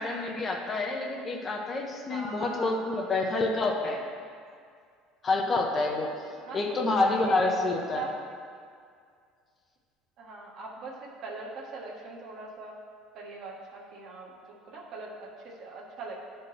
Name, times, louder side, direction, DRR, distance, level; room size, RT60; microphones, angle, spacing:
voice 1, 0.0-4.0 5.2-6.1 6.5-8.1, left 2 dB, 30° left, 1 dB, 0.8 m, -28 dB
voice 2, 2.1-3.5 6.4-7.5 7.9-8.1 10.2-12.8 13.1-16.1, right 3 dB, 55° right, -2 dB, 1.4 m, -42 dB
11.0 x 4.4 x 3.3 m, 2.2 s
cardioid pair, 120°, 0 cm